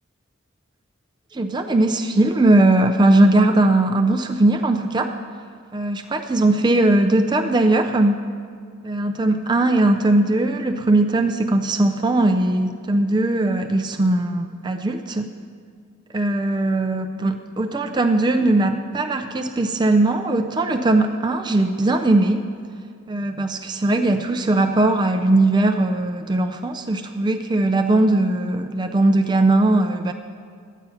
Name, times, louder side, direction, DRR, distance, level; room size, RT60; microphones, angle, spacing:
voice 1, 1.3-5.1 5.7-8.2 8.8-15.3 16.1-22.4 23.1-30.1, right 2 dB, 20° right, 5 dB, 0.4 m, -19 dB
12.0 x 9.2 x 5.5 m, 2.2 s
head